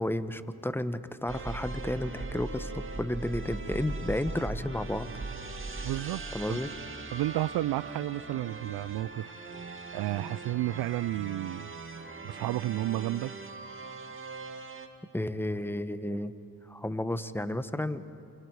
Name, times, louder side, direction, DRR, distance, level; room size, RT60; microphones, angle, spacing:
voice 1, 0.0-5.1 6.3-6.7 15.1-16.3 16.7-18.1, left 1 dB, 5° left, 1.1 m, -32 dB
sound 1, 1.3-14.9, right 3 dB, 30° right, 2.0 m, -40 dB
voice 2, 5.8-6.2 6.5-6.6 7.1-9.3 9.9-11.7 12.2-13.3, right 15 dB, 65° right, 0.5 m, -31 dB
28.5 x 25.5 x 4.8 m
supercardioid pair, 45°, 40 cm